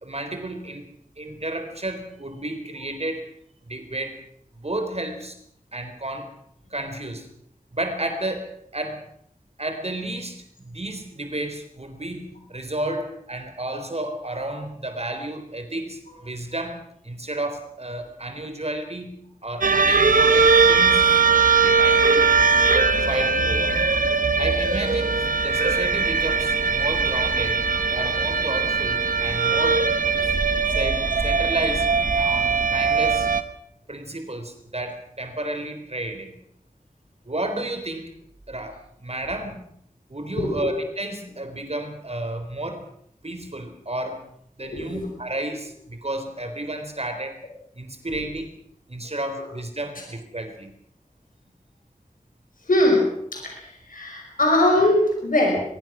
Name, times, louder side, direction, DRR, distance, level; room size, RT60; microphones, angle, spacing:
voice 1, 0.0-3.3 3.7-4.2 4.6-5.4 5.7-6.3 6.7-7.3 7.7-9.0 9.6-19.2 19.4-21.2 21.6-22.3 23.0-23.8 24.4-27.6 27.9-29.8 30.7-31.9 32.2-33.3 33.9-36.4 37.2-38.1 38.5-39.6 40.1-42.9 43.2-44.2 44.6-47.4 47.8-48.5 48.9-50.7, right 1 dB, 50° right, 7 dB, 3.8 m, -32 dB
sound 1, 19.6-33.4, right 4 dB, 85° right, 1.4 m, -20 dB
voice 2, 27.6-28.1 40.4-40.7 44.6-45.0 52.7-55.6, left 1 dB, 90° left, 0 dB, 5.7 m, -22 dB
22.5 x 22.0 x 6.2 m, 0.71 s
wide cardioid pair, 50°, 14 cm